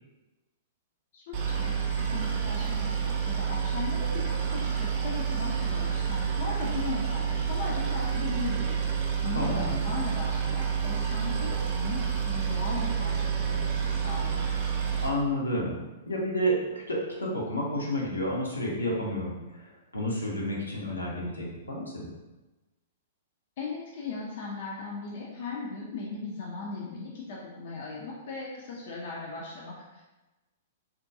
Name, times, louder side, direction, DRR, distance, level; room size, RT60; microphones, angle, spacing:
voice 1, 1.1-8.8 9.2-14.4 23.6-30.0, left 3 dB, 55° left, -4 dB, 0.4 m, -37 dB
Boat Water vehicle, 1.3-15.1, right 7 dB, 45° right, 0.4 m, -29 dB
voice 2, 9.3-9.8 15.0-15.8 16.1-16.6 16.9-22.1, equal, 85° left, -4 dB, 0.7 m, -30 dB
2.6 x 2.2 x 2.5 m, 1.1 s
figure-of-eight pair, 110°, 0 cm